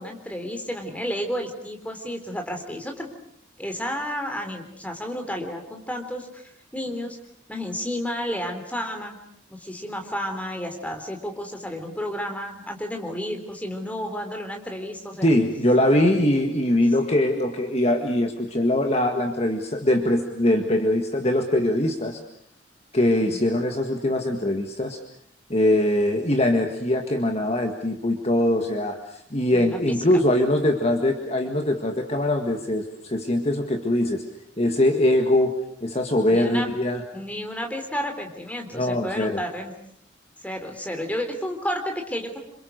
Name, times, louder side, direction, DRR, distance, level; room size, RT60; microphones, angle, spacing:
voice 1, 0.0-3.1 3.6-6.4 6.7-7.2 7.5-9.2 9.5-15.3 23.2-23.4 29.5-29.8 36.3-36.7 37.1-39.7 40.4-42.4, equal, 5° left, 4 dB, 3.7 m, -31 dB
voice 2, 15.2-22.2 22.9-25.0 25.5-34.2 34.6-35.5 35.8-37.0 38.7-39.4, left 1 dB, 30° left, 4 dB, 1.8 m, -22 dB
28.5 x 26.5 x 6.6 m, 0.69 s
head